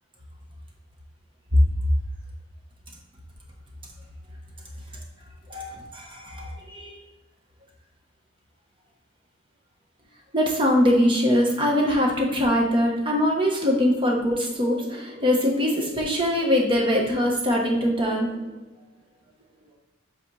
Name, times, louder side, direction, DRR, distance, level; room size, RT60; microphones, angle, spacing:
voice 1, 5.5-7.0 10.3-18.4, equal, 25° right, -1 dB, 1.1 m, -22 dB
7.7 x 4.2 x 3.3 m, 1.0 s
head